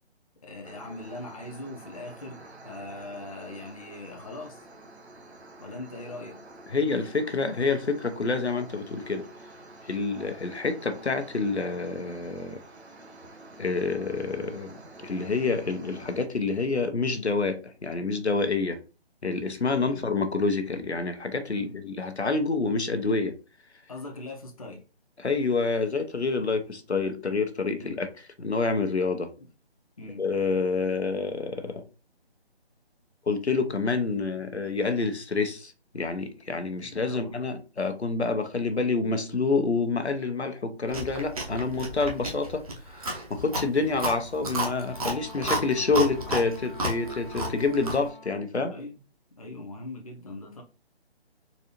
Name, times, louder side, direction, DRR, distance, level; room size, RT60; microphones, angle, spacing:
voice 1, 0.4-4.7 5.6-6.4 19.8-20.1 21.5-21.8 23.9-24.8 27.8-28.0 30.0-30.2 36.8-37.3 48.7-49.0 49.4-50.6, left 2 dB, 35° left, 0.6 m, -41 dB
sound 1, 0.6-16.3, right 2 dB, 85° right, 0.9 m, -48 dB
voice 2, 6.7-9.3 9.8-12.6 13.6-18.8 19.2-23.4 25.2-28.1 28.4-29.3 30.2-31.8 33.3-42.6 42.9-48.7, left 4 dB, 90° left, 0.7 m, -28 dB
Chewing mastication, 40.9-48.1, right 1 dB, 35° right, 0.7 m, -33 dB
Wind instrument woodwind instrument, 44.8-48.5, left 2 dB, 55° left, 1.0 m, -48 dB
4.0 x 2.5 x 2.9 m
figure-of-eight pair, 150°, 32 cm